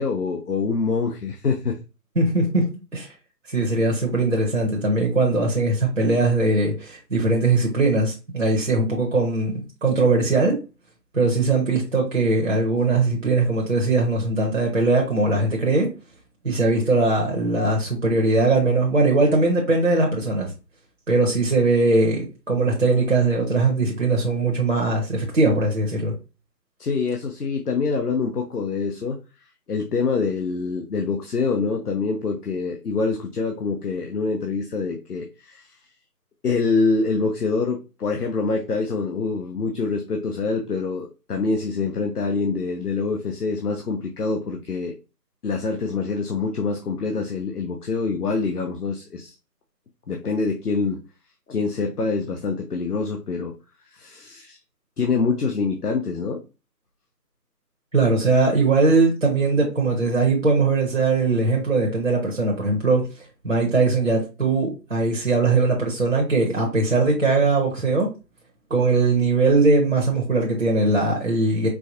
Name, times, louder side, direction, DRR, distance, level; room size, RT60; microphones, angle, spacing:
voice 1, 0.0-1.8 26.8-29.2 29.7-35.7 36.4-44.9 45.4-49.3 50.1-51.0 51.5-53.5 53.9-54.6 55.0-56.4, left 4 dB, 65° left, 2 dB, 0.7 m, -25 dB
voice 2, 2.2-2.6 2.9-3.1 3.5-9.5 9.8-10.6 11.1-15.9 16.4-20.5 21.1-26.1 57.9-63.0 63.4-68.1 68.7-71.7, right 3 dB, 50° right, 0 dB, 0.9 m, -20 dB
4.5 x 2.2 x 2.6 m, 0.30 s
figure-of-eight pair, 175°, 49 cm